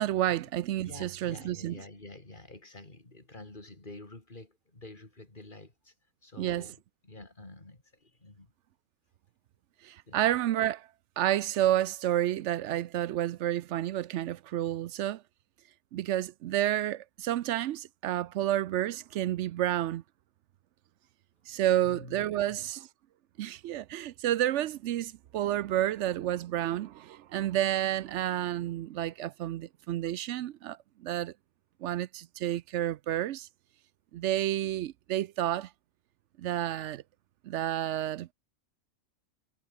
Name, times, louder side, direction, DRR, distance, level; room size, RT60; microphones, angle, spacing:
voice 1, 0.0-1.8 6.4-6.7 9.8-10.9 11.2-15.2 15.9-20.0 21.5-22.9 23.4-31.3 31.8-33.5 34.1-35.7 36.4-37.0 37.4-38.3, right 12 dB, 70° right, 0.8 m, -30 dB
voice 2, 0.8-5.9 6.2-8.5 10.1-10.2 21.8-22.7, left 2 dB, 40° left, 3.8 m, -49 dB
omnidirectional pair, 1.4 m